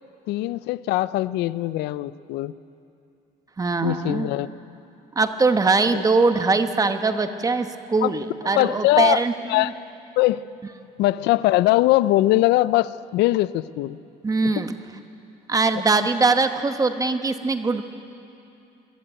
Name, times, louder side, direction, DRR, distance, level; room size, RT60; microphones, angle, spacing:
voice 1, 0.3-2.5 3.8-4.5 5.9-6.0 8.0-8.1 8.6-9.2 9.5-9.7 10.2-10.4 11.0-14.0 14.6-14.7, left 17 dB, 85° left, 18 dB, 0.5 m, -21 dB
voice 2, 3.6-4.3 5.2-9.7 14.2-14.7 15.5-17.8, right 3 dB, 20° right, 8 dB, 1.1 m, -22 dB
22.5 x 13.0 x 8.9 m, 2.7 s
cardioid pair, 110°, 17 cm